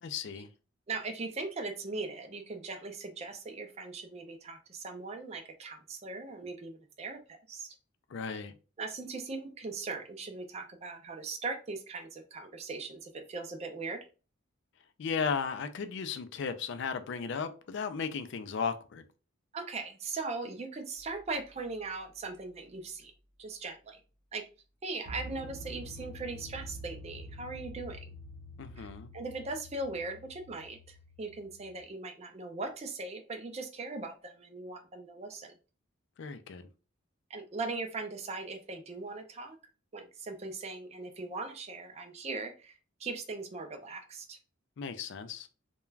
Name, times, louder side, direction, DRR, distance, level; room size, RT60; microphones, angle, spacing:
voice 1, 0.0-0.5 8.1-8.5 15.0-19.0 28.6-29.1 36.2-36.6 44.8-45.5, left 6 dB, 55° left, 0.4 m, -35 dB
voice 2, 0.9-7.8 8.3-8.4 8.8-14.1 19.5-23.1 23.4-24.0 24.3-24.4 24.8-28.1 28.8-28.9 29.1-35.5 37.3-39.6 39.9-44.4, right 3 dB, 30° right, 0.4 m, -39 dB
sound 1, 21.0-21.2 25.1-31.8, equal, 80° right, 0.7 m, -47 dB
2.3 x 2.2 x 3.1 m
head